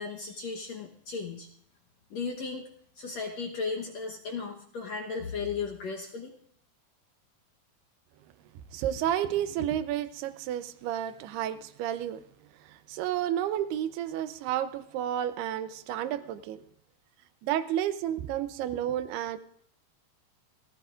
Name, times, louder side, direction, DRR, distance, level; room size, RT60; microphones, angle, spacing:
voice 1, 0.0-1.5 2.1-2.6 3.0-6.3, left 5 dB, 65° left, 0 dB, 1.8 m, -35 dB
voice 2, 8.7-12.2 12.6-16.6 17.4-19.4, right 11 dB, 85° right, 12 dB, 2.8 m, -31 dB
29.0 x 14.5 x 2.5 m, 0.68 s
omnidirectional pair, 4.5 m